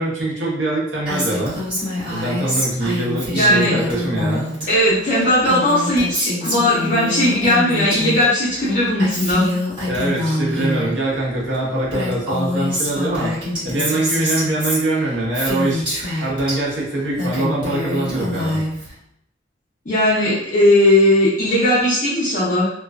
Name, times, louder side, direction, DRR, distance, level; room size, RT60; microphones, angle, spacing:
voice 1, 0.0-1.6 2.1-4.7 9.9-13.3 13.6-15.8 16.2-18.6, right 2 dB, 90° right, -4 dB, 0.8 m, -23 dB
Female speech woman speaking, 1.1-4.7 4.9-8.2 8.5-10.9 11.5-11.6 11.9-16.6 17.0-18.9, left 1 dB, 30° right, 0.9 m, -25 dB
voice 2, 3.3-3.8 4.7-9.5 19.9-22.7, left 1 dB, 45° left, -10 dB, 0.6 m, -17 dB
2.4 x 2.2 x 2.3 m, 0.74 s
head